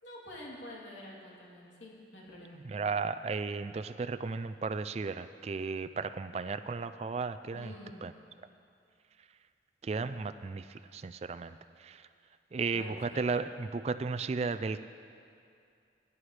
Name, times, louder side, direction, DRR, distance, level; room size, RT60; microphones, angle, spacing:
voice 1, 0.0-2.6 7.5-8.0 12.7-13.3, left 1 dB, 85° left, -4 dB, 3.0 m, -47 dB
voice 2, 2.5-7.7 8.0-8.1 9.8-12.0 12.5-14.8, right 4 dB, 35° right, 12 dB, 0.3 m, -35 dB
21.0 x 11.0 x 3.3 m, 2.4 s
head